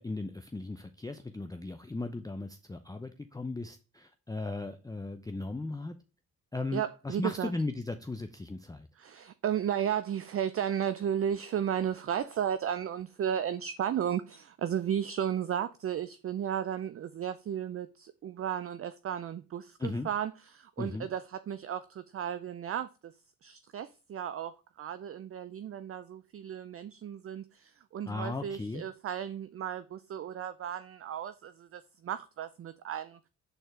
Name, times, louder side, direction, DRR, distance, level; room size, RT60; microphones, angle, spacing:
voice 1, 0.0-5.9 6.5-8.9 19.8-20.1 20.8-21.1 28.1-28.8, left 2 dB, 10° left, 0.6 m, -37 dB
voice 2, 6.7-7.5 9.0-23.1 23.4-33.2, right 9 dB, 35° right, 0.4 m, -34 dB
7.9 x 4.3 x 3.4 m
hypercardioid pair, 40°, 41 cm